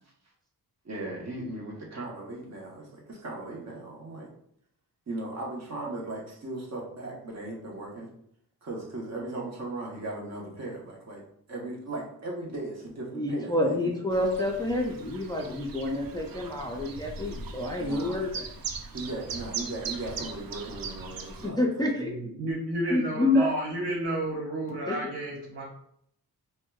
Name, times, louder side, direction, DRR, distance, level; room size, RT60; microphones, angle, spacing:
voice 1, 0.8-4.3 5.1-8.1 8.6-11.2 11.5-14.0 17.8-18.2 18.9-21.6, right 2 dB, 40° right, -2 dB, 0.9 m, -37 dB
voice 2, 13.1-18.4 21.4-22.1 22.9-23.5 24.9-25.0, left 1 dB, 10° left, -1 dB, 0.3 m, -28 dB
Chirp tweet, 14.1-21.5, right 5 dB, 60° right, 0.5 m, -39 dB
voice 3, 22.0-25.6, right 1 dB, 80° right, -2 dB, 1.1 m, -31 dB
4.4 x 2.2 x 2.2 m, 0.69 s
wide cardioid pair, 115°, 39 cm